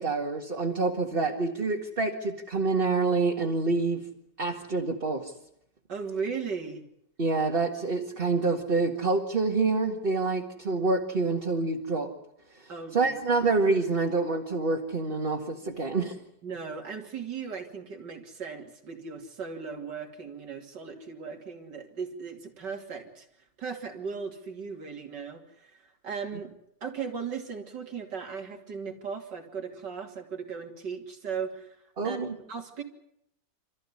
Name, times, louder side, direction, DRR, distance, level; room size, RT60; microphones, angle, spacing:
voice 1, 0.0-4.0 4.4-5.3 7.2-12.1 12.9-16.2 32.0-32.4, right 3 dB, 35° right, 1 dB, 2.0 m, -27 dB
voice 2, 5.9-6.9 12.7-13.2 16.4-23.3 23.6-26.5 26.8-31.8 32.0-32.2 32.5-32.8, right 6 dB, 90° right, 3 dB, 3.4 m, -37 dB
27.5 x 14.5 x 9.8 m, 0.78 s
omnidirectional pair, 1.8 m